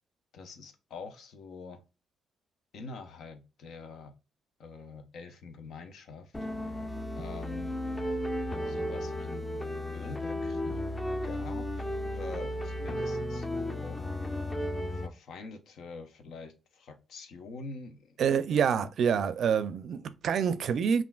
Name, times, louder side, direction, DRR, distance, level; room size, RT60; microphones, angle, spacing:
voice 1, 0.3-1.8 2.7-4.1 4.6-6.3 7.2-7.7 8.6-9.5 9.9-10.8 11.2-14.0 14.9-18.2 18.5-18.6, left 4 dB, 70° left, 0.7 m, -45 dB
sound 1, 6.3-15.1, left 1 dB, 15° left, 0.6 m, -34 dB
voice 2, 18.2-21.0, right 7 dB, 65° right, 0.4 m, -27 dB
5.5 x 2.5 x 2.3 m
cardioid pair, 90°, 0 cm